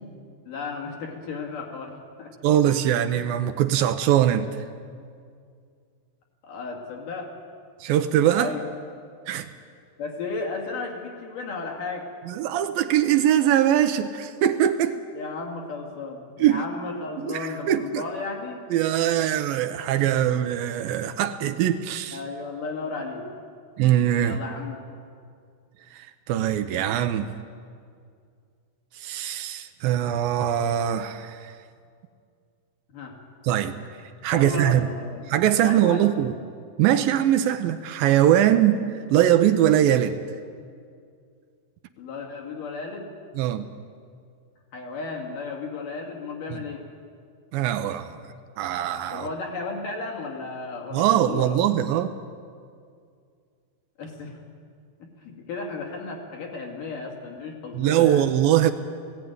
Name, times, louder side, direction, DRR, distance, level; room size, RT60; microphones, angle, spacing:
voice 1, 0.5-2.3 6.4-7.3 8.4-8.6 10.0-12.1 15.1-18.6 22.1-23.3 24.2-25.0 32.9-33.2 34.3-36.2 42.0-43.1 44.7-46.9 49.1-51.6 54.0-54.4 55.0-58.3, left 4 dB, 65° left, 1 dB, 3.9 m, -34 dB
voice 2, 2.4-4.6 7.8-8.5 9.3-9.5 12.3-15.0 16.4-16.7 17.2-18.0 18.7-22.2 23.8-24.4 25.9-27.3 29.0-31.5 33.4-33.8 34.2-34.9 35.3-36.3 36.8-40.2 43.4-43.7 46.5-46.6 47.5-48.2 48.6-49.3 50.9-52.1 57.7-58.7, right 11 dB, 80° right, 8 dB, 2.5 m, -22 dB
18.5 x 16.5 x 9.4 m, 2.2 s
omnidirectional pair, 4.2 m